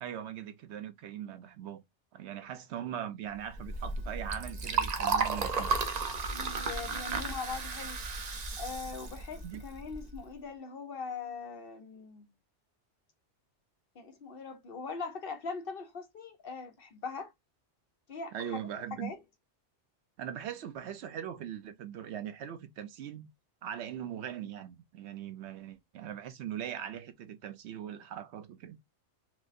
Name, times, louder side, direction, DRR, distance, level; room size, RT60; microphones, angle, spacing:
voice 1, 0.0-1.8 2.1-5.7 9.4-9.6 18.3-19.1 20.2-23.3 23.6-28.8, right 10 dB, 70° right, 0.8 m, -40 dB
Liquid, 3.5-10.2, right 4 dB, 45° right, 0.6 m, -34 dB
voice 2, 6.3-8.0 8.6-12.3 14.0-17.3 18.1-18.6 19.0-19.2, left 5 dB, 55° left, 0.8 m, -41 dB
4.8 x 2.0 x 2.5 m
omnidirectional pair, 1.2 m